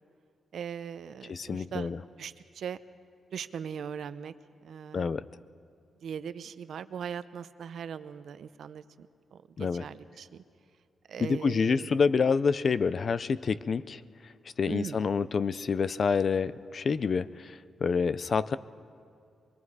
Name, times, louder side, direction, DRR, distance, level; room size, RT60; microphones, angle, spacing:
voice 1, 0.5-1.9 2.2-2.8 3.3-4.3 4.6-5.1 6.0-10.4 11.1-11.9 14.7-15.0, right 7 dB, 70° right, 13 dB, 0.6 m, -40 dB
voice 2, 1.3-2.0 4.9-5.2 9.6-9.8 11.2-14.0 14.6-18.6, left 5 dB, 45° left, 16 dB, 0.4 m, -27 dB
24.5 x 22.0 x 4.8 m, 2.3 s
wide cardioid pair, 140°, 0 cm